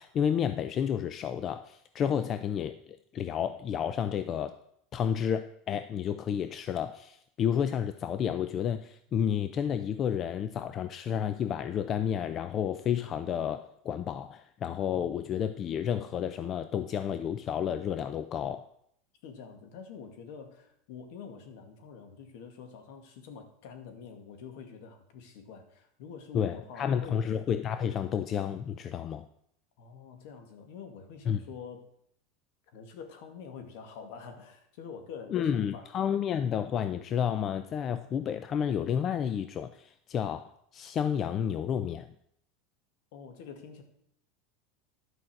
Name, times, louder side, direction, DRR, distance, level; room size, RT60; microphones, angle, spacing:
voice 1, 0.0-2.8 3.1-4.6 4.9-18.7 26.3-29.3 31.3-31.4 35.3-42.1, left 8 dB, 35° left, 10 dB, 0.5 m, -31 dB
voice 2, 19.2-27.2 29.8-31.9 32.7-35.9 43.1-43.8, left 6 dB, 65° left, 6 dB, 2.1 m, -46 dB
11.0 x 5.6 x 7.6 m, 0.71 s
supercardioid pair, 135°, 0 cm